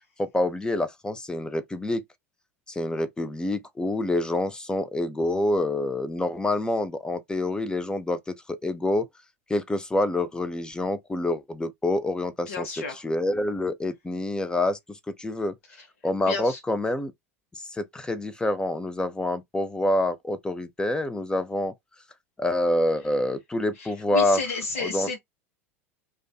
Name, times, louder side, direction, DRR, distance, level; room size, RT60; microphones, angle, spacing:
voice 1, 0.2-2.0 2.7-9.1 9.5-12.8 13.0-15.5 16.0-17.1 17.7-21.7 22.4-24.4 24.8-25.1, left 1 dB, 10° left, 0.5 m, -27 dB
voice 2, 12.5-13.0 15.8-15.9 16.3-16.6 23.8-25.2, left 3 dB, 70° left, 0.8 m, -32 dB
2.4 x 2.3 x 2.3 m
hypercardioid pair, 80°, 8 cm